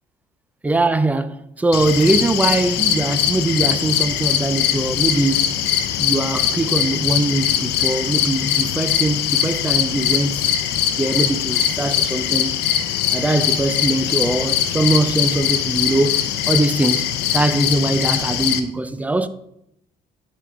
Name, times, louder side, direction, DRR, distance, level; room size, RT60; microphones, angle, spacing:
voice 1, 0.6-5.6 6.0-10.5 10.9-12.5 13.1-19.3, right 2 dB, 10° right, 0.5 m, -21 dB
sound 1, 1.7-18.6, left 10 dB, 85° left, 0.8 m, -21 dB
11.0 x 4.9 x 3.6 m
cardioid pair, 110°, 17 cm